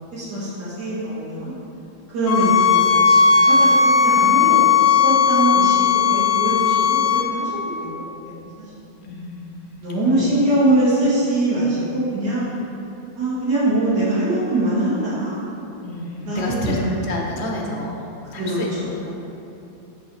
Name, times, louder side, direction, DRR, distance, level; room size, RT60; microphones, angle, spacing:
voice 1, 0.0-1.5 2.1-7.9 8.2-8.5 8.9-9.1 9.8-12.5 13.2-15.4 16.2-16.9 18.4-18.9, right 1 dB, 75° right, -11 dB, 2.5 m, -23 dB
sound 1, 2.3-7.3, left 6 dB, 85° left, 0.6 m, -16 dB
voice 2, 9.0-9.7 10.1-10.3 15.8-16.8 17.1-19.1, left 2 dB, 45° left, -1 dB, 1.0 m, -30 dB
5.8 x 4.7 x 6.2 m, 2.8 s
omnidirectional pair, 1.8 m